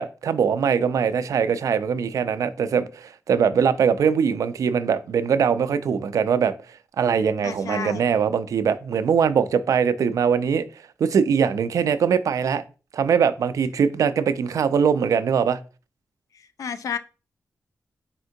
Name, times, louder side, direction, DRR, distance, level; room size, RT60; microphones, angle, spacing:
voice 1, 0.0-6.5 7.0-10.6 11.0-12.6 12.9-15.6, right 7 dB, 80° right, 0.3 m, -22 dB
voice 2, 7.4-8.1 16.6-17.0, left 7 dB, 75° left, 0.3 m, -31 dB
4.3 x 3.6 x 2.6 m
wide cardioid pair, 160°, 6 cm